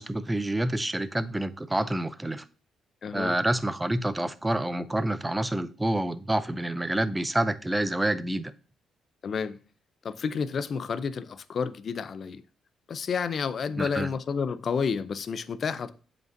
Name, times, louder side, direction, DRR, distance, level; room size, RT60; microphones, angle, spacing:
voice 1, 0.0-2.4 3.1-8.5 13.8-14.1, right 1 dB, 10° right, 0.5 m, -28 dB
voice 2, 3.0-3.4 9.2-9.6 10.0-12.4 12.9-15.9, left 6 dB, 50° left, 0.5 m, -30 dB
7.5 x 5.3 x 2.6 m
cardioid pair, 90°, 0 cm